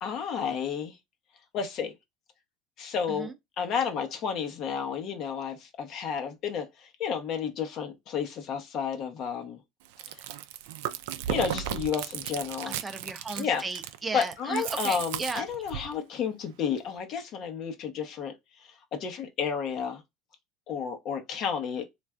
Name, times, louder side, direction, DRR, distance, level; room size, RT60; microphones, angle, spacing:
voice 1, 0.0-0.9 1.5-1.9 2.8-3.3 3.6-9.6 11.3-12.7 13.4-13.6 14.1-18.3 19.0-20.0 20.7-21.9, left 7 dB, 55° left, 0.8 m, -31 dB
Chewing mastication, 9.8-15.9, right 11 dB, 80° right, 0.3 m, -35 dB
voice 2, 12.7-15.5, right 4 dB, 20° right, 0.5 m, -35 dB
3.2 x 2.5 x 2.3 m
supercardioid pair, 100°, 0 cm